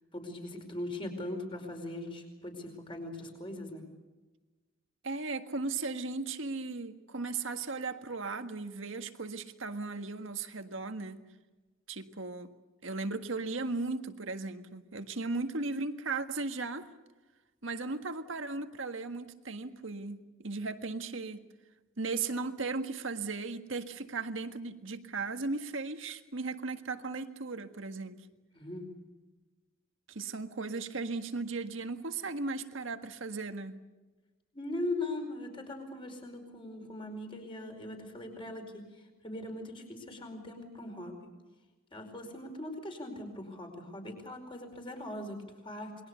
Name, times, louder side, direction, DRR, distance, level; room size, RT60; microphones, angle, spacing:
voice 1, 0.1-3.8 28.5-28.8 34.5-38.8 39.2-41.1 41.9-45.9, left 1 dB, 25° left, 5.0 m, -40 dB
voice 2, 5.0-11.2 11.9-12.5 12.8-16.9 17.6-21.4 22.0-28.2 30.1-33.8, right 3 dB, 75° right, 1.7 m, -36 dB
28.0 x 21.5 x 7.0 m
head